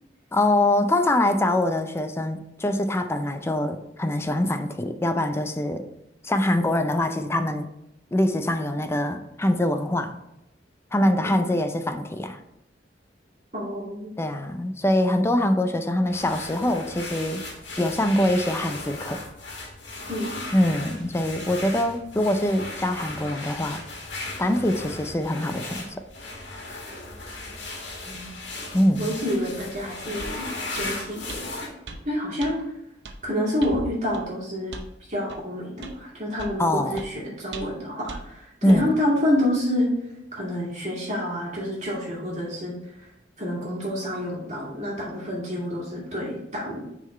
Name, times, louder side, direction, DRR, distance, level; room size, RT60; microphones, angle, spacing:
voice 1, 0.3-5.8 6.2-7.7 8.1-10.2 10.9-12.4 14.2-17.4 17.8-19.2 20.5-23.8 24.4-26.0 28.7-29.2 36.6-37.0 38.6-39.0, left 1 dB, 15° left, 8 dB, 0.4 m, -24 dB
voice 2, 13.5-14.1 20.1-20.3 28.0-28.3 29.0-30.4 30.7-31.7 32.0-32.6 33.2-34.7 35.1-39.9 40.3-42.7 43.4-46.8, left 1 dB, 40° right, -4 dB, 2.2 m, -28 dB
sound 1, 16.1-31.7, left 2 dB, 90° left, 1.6 m, -36 dB
sound 2, 29.6-29.7 30.2-30.4 30.7-30.9 31.3-31.4 31.9-32.0 32.4-32.5 33.0-33.2 33.6-33.8 34.1-34.3 34.7-34.9 35.3-35.4 35.8-36.0 36.4-36.6 37.0-37.1 37.5-37.8 38.1-38.2 38.7-38.8, right 3 dB, 70° right, 0.7 m, -38 dB
6.1 x 3.9 x 4.2 m, 0.85 s
head